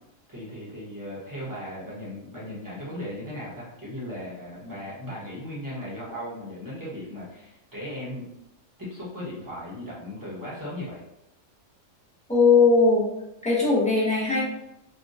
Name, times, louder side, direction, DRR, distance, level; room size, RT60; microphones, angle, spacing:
voice 1, 0.3-8.3 8.8-11.0, left 1 dB, 15° right, -8 dB, 1.0 m, -37 dB
voice 2, 12.3-13.1 13.4-14.4, left 4 dB, 10° left, -7 dB, 0.3 m, -19 dB
3.4 x 2.3 x 2.7 m, 0.86 s
omnidirectional pair, 1.6 m